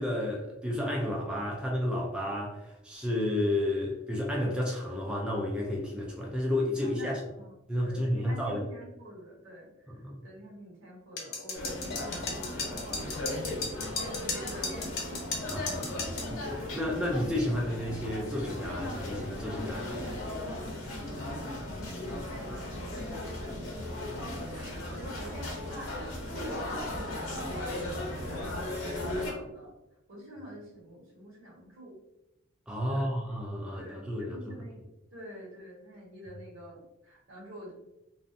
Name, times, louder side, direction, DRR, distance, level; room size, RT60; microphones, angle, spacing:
voice 1, 0.0-7.2 7.7-8.6 10.0-10.2 15.5-20.2 32.7-34.4, left 1 dB, 5° right, -3 dB, 0.3 m, -31 dB
voice 2, 6.8-16.1 22.0-22.9 24.5-29.7 30.1-32.0 32.9-33.1 33.7-34.8 35.1-37.7, equal, 75° right, -5 dB, 1.1 m, -47 dB
sound 1, 11.2-16.3, left 4 dB, 55° left, 0.6 m, -35 dB
sound 2, 11.5-29.3, left 1 dB, 90° left, 0.8 m, -37 dB
2.6 x 2.1 x 2.5 m, 0.91 s
head